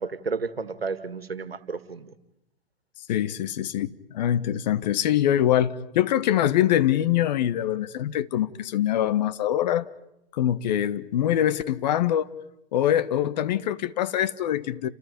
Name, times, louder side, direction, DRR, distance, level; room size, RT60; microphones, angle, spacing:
voice 1, 0.0-2.1, right 4 dB, 85° right, 1.9 m, -32 dB
voice 2, 3.1-9.9 10.3-12.3 12.7-14.9, left 11 dB, 45° left, 1.3 m, -24 dB
29.5 x 27.5 x 5.3 m
figure-of-eight pair, 120°, 29 cm